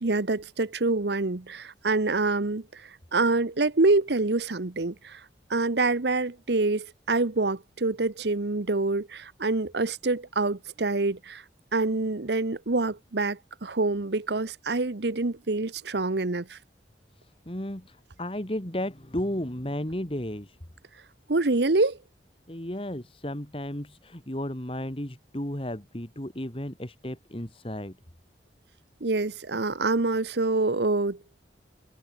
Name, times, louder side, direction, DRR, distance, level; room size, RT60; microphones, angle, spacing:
voice 1, 0.0-5.2 5.5-11.4 11.7-16.6 21.3-22.0 29.0-31.2, right 3 dB, 65° right, 1.0 m, -26 dB
voice 2, 17.5-20.6 22.5-27.9, left 1 dB, 30° left, 2.3 m, -34 dB
head